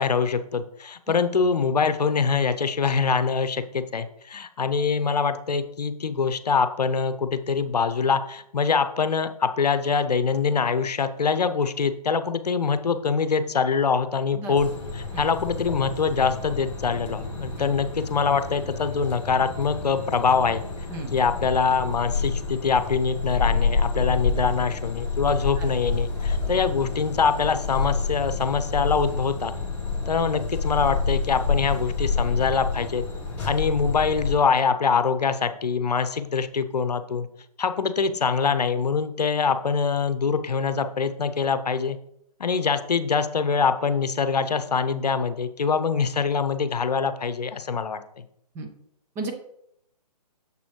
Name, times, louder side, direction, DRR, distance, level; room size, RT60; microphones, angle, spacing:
voice 1, 0.0-20.6 21.1-29.5 30.1-33.0 33.4-37.3 37.6-42.0 42.4-48.0, left 5 dB, 70° left, 11 dB, 0.8 m, -24 dB
voice 2, 14.4-14.6 15.1-15.2 17.6-17.7 20.9-21.1 48.6-48.7 49.2-49.3, right 2 dB, 10° right, 2 dB, 0.5 m, -32 dB
sound 1, 14.6-34.3, left 4 dB, 10° left, 3.0 m, -29 dB
7.0 x 6.9 x 3.2 m, 0.76 s
figure-of-eight pair, 145°, 21 cm